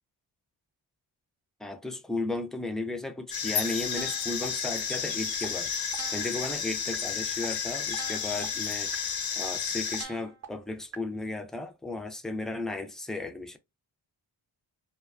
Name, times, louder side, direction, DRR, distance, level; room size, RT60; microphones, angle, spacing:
voice 1, 1.6-5.7 6.1-13.6, left 2 dB, ahead, 0.3 m, -35 dB
sound 1, 3.3-10.0, left 6 dB, 50° left, 0.5 m, -32 dB
sound 2, 4.0-4.4 4.9-5.0 5.4-5.5 5.9-6.4 6.9-7.0 7.4-7.5 7.9-8.4 8.9-9.0 9.4-9.5 9.9-10.4 10.9-11.0, right 6 dB, 30° right, 0.7 m, -41 dB
2.4 x 2.2 x 2.4 m
cardioid pair, 55°, 48 cm